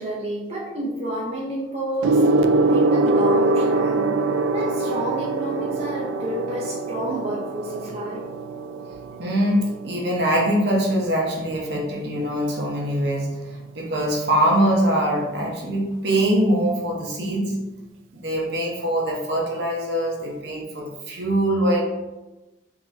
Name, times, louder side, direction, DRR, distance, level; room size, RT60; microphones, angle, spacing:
voice 1, 0.0-2.3 2.7-4.2 4.5-8.3, right 1 dB, 35° right, -5 dB, 0.6 m, -30 dB
Gong, 2.0-11.8 12.7-13.0, right 2 dB, 85° right, 0.3 m, -23 dB
voice 2, 2.4-2.9 9.2-17.6 18.1-21.8, right 1 dB, 55° right, -1 dB, 0.9 m, -23 dB
3.8 x 2.9 x 4.0 m, 1.1 s
head